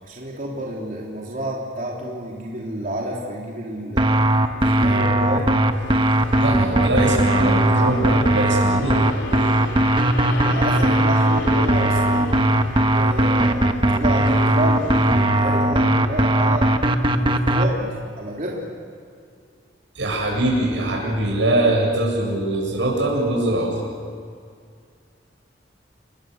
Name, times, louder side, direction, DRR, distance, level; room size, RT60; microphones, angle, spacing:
voice 1, 0.0-4.2 4.5-5.5 10.2-12.4 12.9-16.7 17.1-18.7, right 1 dB, 45° right, -3 dB, 3.4 m, -29 dB
sound 1, 4.0-17.7, right 1 dB, 30° right, 1.3 m, -18 dB
sound 2, 5.7-15.3, left 2 dB, 80° left, 2.8 m, -34 dB
voice 2, 6.4-9.0 20.0-23.8, right 1 dB, 90° right, 0 dB, 8.0 m, -22 dB
29.5 x 22.5 x 6.8 m, 2.3 s
head